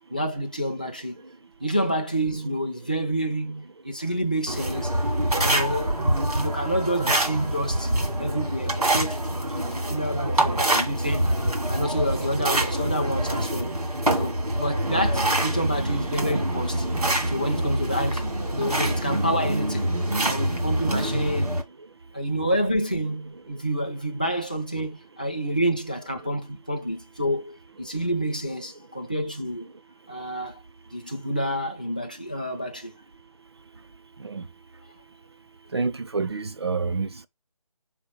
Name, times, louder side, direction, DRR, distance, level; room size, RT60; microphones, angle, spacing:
voice 1, 0.1-1.2 1.6-4.9 5.3-11.3 11.7-13.8 14.1-16.9 17.3-19.9 20.2-21.6 22.1-29.7 30.1-30.6 30.9-32.9, equal, 15° left, 0.4 m, -28 dB
sound 1, 4.5-21.6, right 1 dB, 85° right, 1.9 m, -25 dB
voice 2, 35.7-37.3, right 4 dB, 45° right, 0.5 m, -28 dB
5.0 x 3.8 x 5.2 m
figure-of-eight pair, 160°, 19 cm